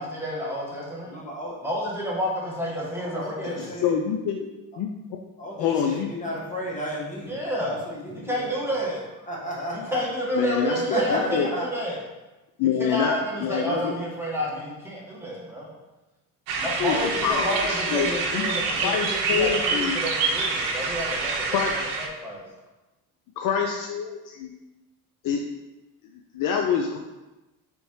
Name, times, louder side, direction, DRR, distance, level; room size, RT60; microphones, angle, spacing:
voice 1, 0.0-1.1 1.6-3.7 7.3-7.8 8.1-9.0 9.7-12.0 12.6-15.7 16.6-21.7 22.0-22.4, equal, 5° right, -5 dB, 1.4 m, -30 dB
voice 2, 1.1-1.5 3.0-3.9 5.4-7.4 7.7-8.5 9.3-10.1 10.7-11.7 11.9-12.0, equal, 20° left, -4 dB, 1.5 m, -33 dB
voice 3, 3.6-4.5 4.8-4.9 5.6-6.1 10.3-10.8 11.1-11.5 12.6-13.9 16.8-18.5 18.8-20.0 21.5-21.7 23.4-24.5 25.2-25.5 26.3-27.0, left 7 dB, 50° left, 3 dB, 0.5 m, -26 dB
sound 1, 16.5-22.1, right 4 dB, 65° right, 0.8 m, -27 dB
3.9 x 3.5 x 3.1 m, 1.1 s
supercardioid pair, 80°, 42 cm